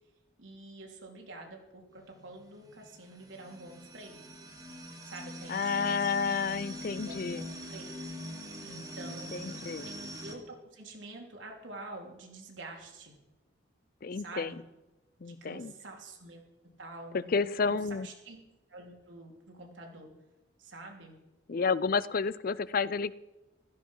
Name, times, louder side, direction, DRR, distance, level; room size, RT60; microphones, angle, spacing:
voice 1, 0.4-4.3 5.0-6.5 7.0-7.9 8.6-13.1 14.1-14.6 15.2-16.5 16.8-18.4 18.7-20.1 20.6-21.2, right 2 dB, 90° right, 1 dB, 3.4 m, -47 dB
sound 1, 1.9-10.3, equal, 20° right, 2.0 m, -43 dB
voice 2, 5.5-7.4 9.3-9.9 14.0-14.6 15.2-15.7 17.1-18.1 21.5-23.1, left 5 dB, 50° left, 18 dB, 0.5 m, -30 dB
15.5 x 13.5 x 5.6 m, 1.0 s
head